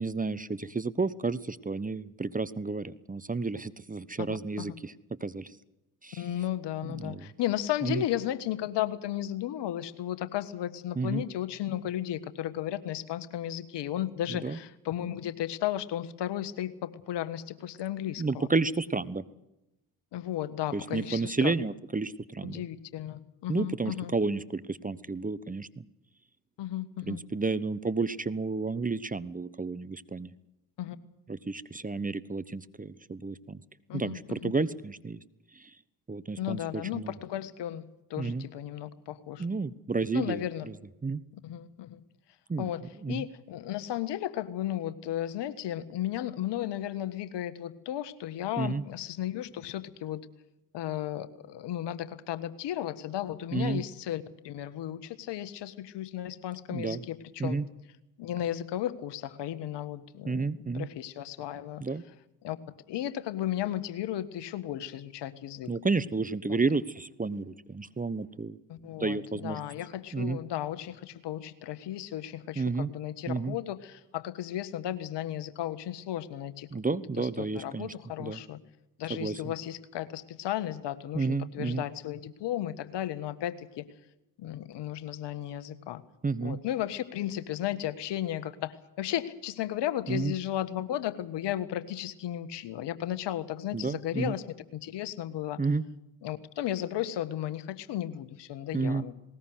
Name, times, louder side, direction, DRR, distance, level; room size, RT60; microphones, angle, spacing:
voice 1, 0.0-4.9 5.2-5.6 6.0-6.3 6.8-7.3 7.8-8.0 11.0-11.2 14.3-14.6 18.2-19.2 20.7-22.6 23.5-25.9 27.0-30.3 31.3-33.6 33.9-35.2 35.5-35.7 36.1-37.1 38.2-38.5 39.4-40.7 41.0-41.2 42.5-42.7 43.0-43.3 48.6-48.8 53.5-53.8 56.7-57.0 57.4-57.7 60.3-60.9 61.8-62.0 65.7-68.6 69.0-69.6 70.1-70.4 72.6-72.9 73.3-73.6 76.7-77.9 78.2-78.4 79.1-79.5 81.1-81.8 86.2-86.6 90.1-90.3 93.7-94.3 95.6-95.8 98.7-99.0, right 4 dB, 15° right, 16 dB, 1.0 m, -31 dB
voice 2, 4.2-4.7 6.2-18.5 20.1-21.5 22.4-24.1 26.6-27.2 30.8-31.0 33.9-34.5 36.4-37.8 38.1-39.4 40.1-40.7 41.4-42.0 42.6-42.8 43.1-50.2 50.7-57.6 58.2-60.5 60.7-61.8 62.4-62.6 62.9-65.7 66.5-66.6 68.7-78.6 79.0-83.9 84.4-86.0 86.4-94.4 94.7-95.6 96.2-99.1, left 12 dB, 60° left, 14 dB, 1.6 m, -34 dB
19.5 x 19.0 x 8.0 m, 0.90 s
hypercardioid pair, 50°, 46 cm